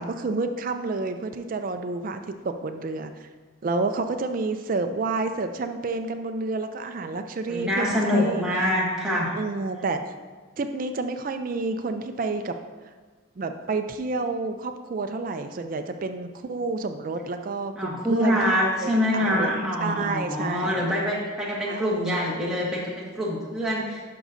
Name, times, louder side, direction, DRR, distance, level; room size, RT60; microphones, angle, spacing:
voice 1, 0.0-3.3 3.6-8.4 9.4-10.0 10.6-12.6 13.4-20.9 21.7-22.1, right 3 dB, 40° right, 8 dB, 0.3 m, -29 dB
voice 2, 7.5-9.3 17.7-24.0, equal, 5° right, -7 dB, 1.5 m, -25 dB
11.5 x 6.1 x 2.6 m, 1.4 s
head